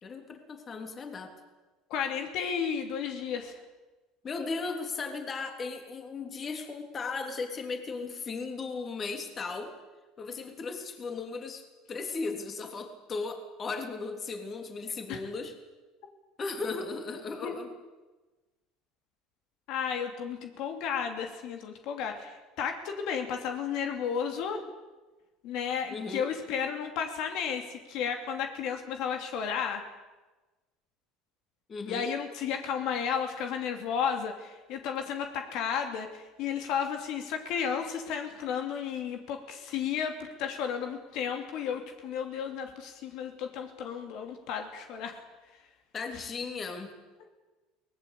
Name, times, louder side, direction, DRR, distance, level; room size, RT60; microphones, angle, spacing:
voice 1, 0.0-1.3 4.2-9.7 10.2-11.6 11.9-15.5 16.4-17.7 25.9-26.3 31.7-32.1 45.9-46.9, left 4 dB, 30° left, 5 dB, 3.3 m, -36 dB
voice 2, 1.9-3.6 15.1-15.2 17.4-17.5 19.7-24.6 25.4-29.8 31.9-45.2 46.1-46.2, left 7 dB, 65° left, 4 dB, 2.8 m, -33 dB
23.0 x 19.5 x 8.4 m, 1.2 s
cardioid pair, 125°, 0 cm